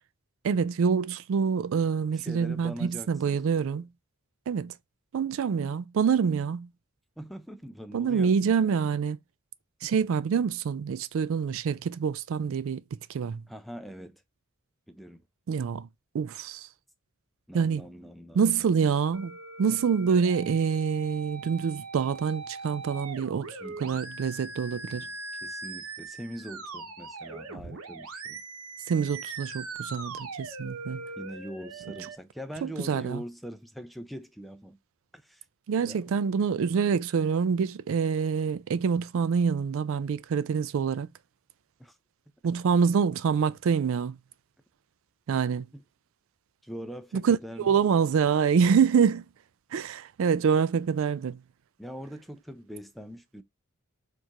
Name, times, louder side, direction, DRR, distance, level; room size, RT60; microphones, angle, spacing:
voice 1, 0.4-3.9 4.5-4.7 5.1-6.7 7.9-9.2 9.8-12.8 13.1-13.4 15.5-15.9 16.1-16.7 17.5-17.8 18.3-19.3 19.6-23.5 23.8-25.1 28.9-31.0 32.6-33.2 35.7-41.1 42.4-44.2 45.3-45.7 47.1-49.2 49.7-51.4, right 6 dB, 65° right, 0.3 m, -26 dB
voice 2, 2.1-3.8 7.2-8.4 13.5-14.2 14.9-15.2 17.5-18.7 23.6-24.1 24.7-25.2 25.4-28.4 31.2-34.8 35.1-35.4 35.8-36.1 41.8-42.0 45.7-45.8 46.6-48.0 51.8-53.4, equal, ahead, 0.4 m, -42 dB
sound 1, 19.1-32.2, right 3 dB, 90° right, 0.9 m, -41 dB
4.5 x 2.5 x 2.8 m
head